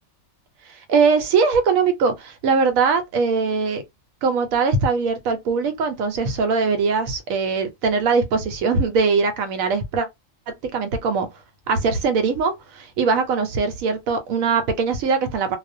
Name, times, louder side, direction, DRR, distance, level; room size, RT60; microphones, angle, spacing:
voice 1, 0.9-3.8 4.2-10.1 10.6-11.3 11.7-15.6, right 4 dB, 85° right, 1.0 m, -21 dB
2.4 x 2.1 x 2.5 m
omnidirectional pair, 1.4 m